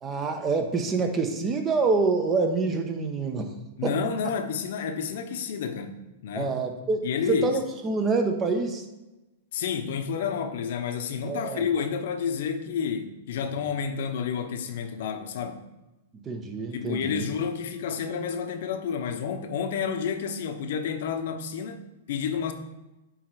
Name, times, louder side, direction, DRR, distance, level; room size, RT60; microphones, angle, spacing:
voice 1, 0.0-3.5 3.8-3.9 6.3-8.8 11.2-11.7 16.2-17.3, right 4 dB, 25° right, 5 dB, 1.1 m, -26 dB
voice 2, 3.8-6.0 6.2-6.5 7.0-7.5 9.5-15.6 16.7-22.5, left 7 dB, 65° left, 7 dB, 0.9 m, -30 dB
8.9 x 3.2 x 4.9 m, 1.0 s
hypercardioid pair, 110°, 0 cm